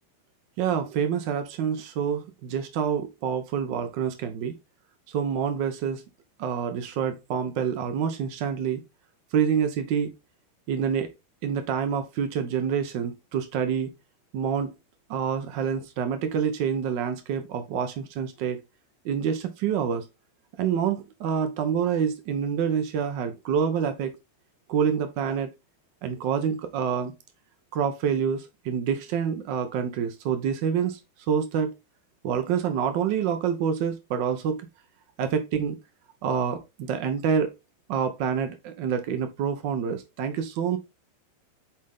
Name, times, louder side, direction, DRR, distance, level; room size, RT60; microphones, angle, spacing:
voice 1, 0.6-4.5 5.1-6.0 6.4-8.8 9.3-10.1 10.7-11.1 11.4-13.9 14.3-14.7 15.1-18.6 19.0-20.0 20.6-24.2 24.7-25.5 26.0-27.1 27.7-31.0 31.3-31.7 32.2-34.7 35.2-35.8 36.2-37.5 37.9-40.8, right 7 dB, 45° right, 1.1 m, -27 dB
8.6 x 3.8 x 3.7 m
figure-of-eight pair, 90°, 0 cm